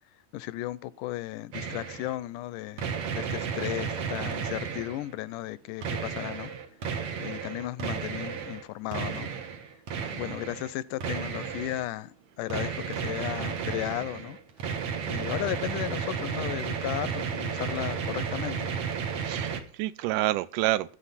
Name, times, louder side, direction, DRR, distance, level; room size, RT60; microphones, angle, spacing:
voice 1, 0.3-6.5 7.2-9.3 10.1-14.4 15.0-18.7, left 16 dB, 80° left, 2.1 m, -35 dB
sound 1, 1.5-2.2 2.8-5.1 5.8-8.6 8.9-10.7 11.0-11.9 12.5-19.6, right 6 dB, 55° right, 2.1 m, -33 dB
voice 2, 10.0-10.4 19.2-21.0, right 16 dB, 80° right, 2.2 m, -29 dB
13.5 x 8.8 x 4.1 m
omnidirectional pair, 3.7 m